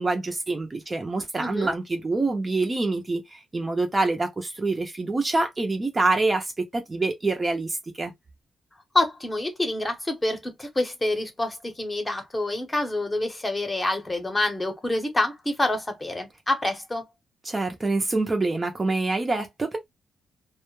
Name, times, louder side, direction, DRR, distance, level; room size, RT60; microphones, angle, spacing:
voice 1, 0.0-8.1 17.4-19.8, right 3 dB, 25° right, 0.5 m, -26 dB
voice 2, 1.4-1.7 8.9-17.0, left 2 dB, 15° left, 0.8 m, -27 dB
2.1 x 2.0 x 3.0 m
cardioid pair, 125°, 0 cm